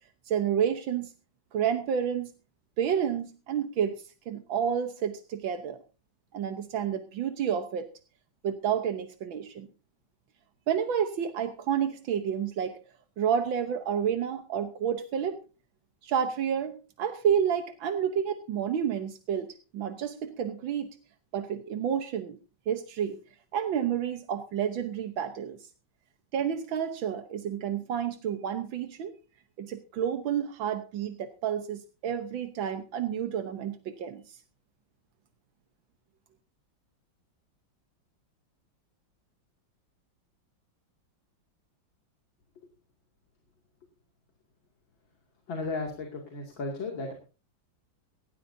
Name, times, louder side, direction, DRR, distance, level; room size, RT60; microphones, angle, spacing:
voice 1, 0.3-1.1 1.5-2.3 2.8-5.8 6.3-7.9 8.4-9.7 10.7-12.8 13.2-15.4 16.0-21.0 21.3-22.4 22.7-23.2 23.5-25.7 26.3-29.1 29.6-34.4, right 8 dB, 85° right, 7 dB, 1.8 m, -30 dB
voice 2, 45.5-47.1, left 3 dB, 80° left, 1 dB, 3.3 m, -34 dB
18.5 x 16.5 x 2.7 m, 0.34 s
omnidirectional pair, 2.1 m